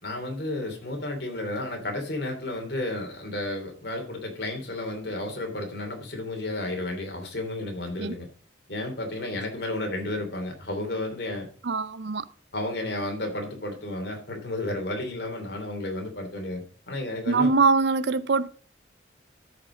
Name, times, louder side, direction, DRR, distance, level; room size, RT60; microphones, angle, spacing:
voice 1, 0.0-8.3 8.7-11.5 12.5-17.5, left 1 dB, 55° left, 3.0 m, -32 dB
voice 2, 11.6-12.3 17.3-18.5, right 4 dB, 65° right, 0.6 m, -23 dB
13.5 x 5.3 x 5.0 m
head